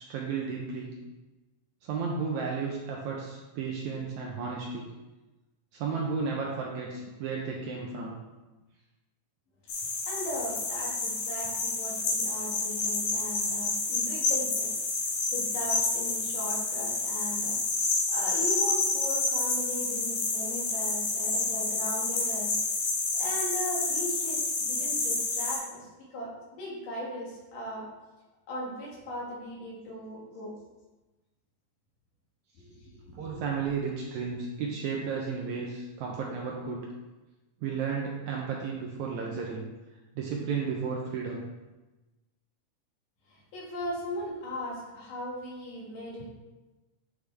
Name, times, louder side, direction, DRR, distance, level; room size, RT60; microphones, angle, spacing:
voice 1, 0.1-0.9 1.8-4.9 5.7-8.2 33.1-36.9 37.6-39.6 40.2-41.4, right 5 dB, 75° right, -1 dB, 1.9 m, -33 dB
sound 1, 9.7-25.6, left 3 dB, 85° left, 3.4 m, -29 dB
voice 2, 10.1-14.7 15.0-17.6 18.1-22.6 23.2-27.9 28.5-30.5 32.6-33.5 43.3-46.3, equal, 70° left, -5 dB, 3.4 m, -38 dB
9.9 x 5.0 x 3.4 m, 1.1 s
omnidirectional pair, 4.0 m